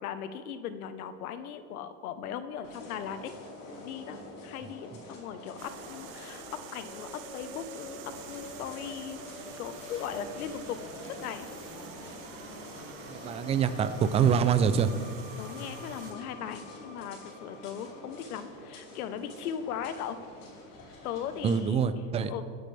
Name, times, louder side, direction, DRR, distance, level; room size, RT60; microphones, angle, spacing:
voice 1, 0.0-3.3 3.8-6.4 6.7-8.0 8.3-9.2 9.5-10.8 11.1-11.5 15.4-20.2 21.0-21.9 22.3-22.4, left 8 dB, 90° left, 10 dB, 1.1 m, -38 dB
sound 1, 2.6-21.6, left 1 dB, 45° left, 4.4 m, -47 dB
sound 2, 5.6-16.1, right 10 dB, 50° right, 1.1 m, -49 dB
Musical instrument, 6.8-18.6, left 3 dB, 15° left, 1.1 m, -50 dB
voice 2, 13.1-14.9 21.4-22.3, right 7 dB, 15° right, 12 dB, 0.4 m, -25 dB
25.0 x 10.0 x 3.4 m, 2.2 s
supercardioid pair, 140°, 43 cm